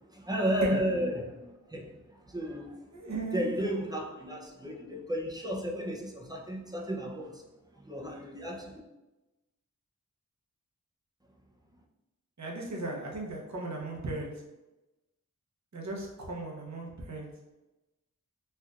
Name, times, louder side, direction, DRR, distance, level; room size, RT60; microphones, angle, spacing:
voice 1, 0.1-2.8 3.3-7.4 7.7-8.8, equal, 10° right, -1 dB, 0.6 m, -33 dB
voice 2, 2.9-3.5 12.4-14.3 15.7-17.3, right 2 dB, 55° right, -1 dB, 0.9 m, -37 dB
4.4 x 2.5 x 2.4 m, 1.1 s
wide cardioid pair, 45°, 33 cm